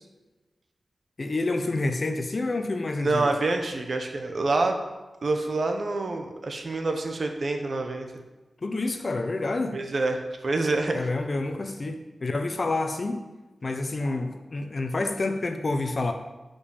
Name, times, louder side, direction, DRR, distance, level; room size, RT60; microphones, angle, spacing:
voice 1, 1.2-3.3 8.6-9.8 10.9-13.2 13.6-16.1, left 2 dB, 40° left, 6 dB, 0.9 m, -28 dB
voice 2, 3.0-4.8 5.2-8.1 9.7-11.1, right 3 dB, 50° right, 5 dB, 1.2 m, -27 dB
9.3 x 5.3 x 7.2 m, 1.2 s
wide cardioid pair, 140°, 0 cm